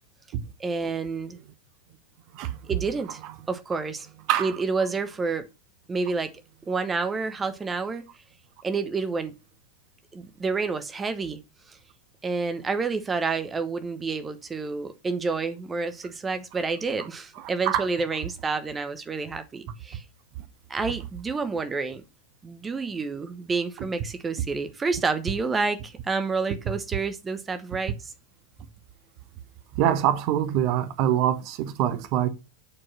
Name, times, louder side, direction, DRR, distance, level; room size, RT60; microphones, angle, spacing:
voice 1, 0.6-1.4 2.7-3.2 3.5-4.1 4.4-5.5 5.9-6.3 6.7-8.0 8.6-9.3 10.1-11.4 11.7-11.8 12.2-20.0 20.7-22.0 22.4-28.1, right 4 dB, 15° right, 0.9 m, -29 dB
voice 2, 29.8-32.3, right 11 dB, 40° right, 1.0 m, -24 dB
8.7 x 4.6 x 6.0 m
figure-of-eight pair, 90°, 0 cm